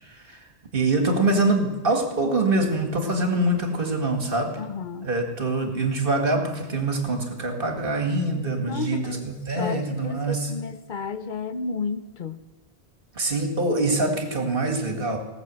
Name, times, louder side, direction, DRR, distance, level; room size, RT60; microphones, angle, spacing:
voice 1, 0.1-0.4 0.7-4.5 5.0-10.5 13.2-15.2, right 2 dB, 55° right, 4 dB, 2.1 m, -24 dB
voice 2, 4.6-5.1 8.7-9.3 9.6-12.4, left 4 dB, 50° left, 12 dB, 0.9 m, -32 dB
18.0 x 6.7 x 7.7 m, 1.1 s
omnidirectional pair, 1.1 m